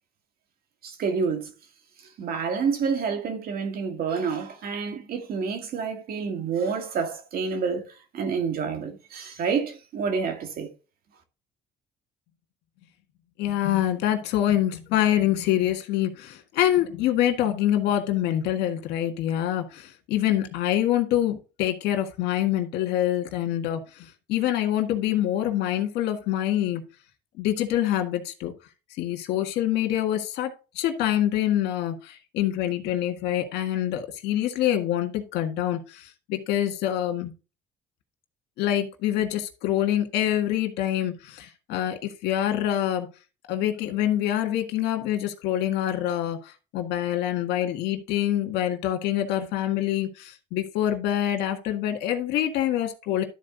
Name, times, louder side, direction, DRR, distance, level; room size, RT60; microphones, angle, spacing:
voice 1, 0.8-1.5 2.2-10.7, right 5 dB, 60° right, 2.2 m, -28 dB
voice 2, 13.4-26.8 27.4-28.5 29.0-37.3 38.6-43.1 43.5-53.2, left 12 dB, 85° left, 1.7 m, -25 dB
12.5 x 4.3 x 4.0 m
cardioid pair, 110°, 17 cm